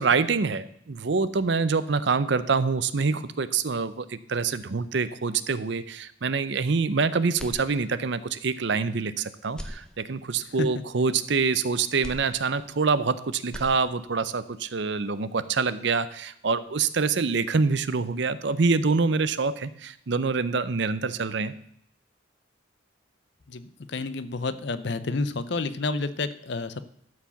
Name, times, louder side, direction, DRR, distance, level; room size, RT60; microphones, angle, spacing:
voice 1, 0.0-21.5, right 4 dB, 60° right, 14 dB, 0.6 m, -26 dB
sound 1, 7.3-8.3 8.7-8.8 9.4-10.5 12.0-13.1 13.4-14.3, equal, 5° left, 0.7 m, -42 dB
voice 2, 23.5-26.8, left 3 dB, 55° left, 14 dB, 0.6 m, -30 dB
12.5 x 4.9 x 7.0 m, 0.69 s
head